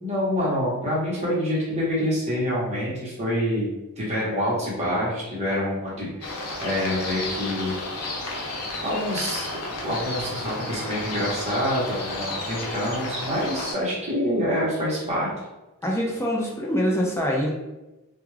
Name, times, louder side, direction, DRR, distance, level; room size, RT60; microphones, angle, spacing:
voice 1, 0.0-3.7 4.0-6.3 6.6-7.8 8.8-9.5 9.8-15.3, equal, 30° right, -6 dB, 1.0 m, -26 dB
sound 1, 6.2-13.7, left 2 dB, 80° left, 0.6 m, -32 dB
voice 2, 15.8-17.5, equal, 10° left, -2 dB, 0.5 m, -24 dB
2.3 x 2.3 x 3.1 m, 1.0 s
head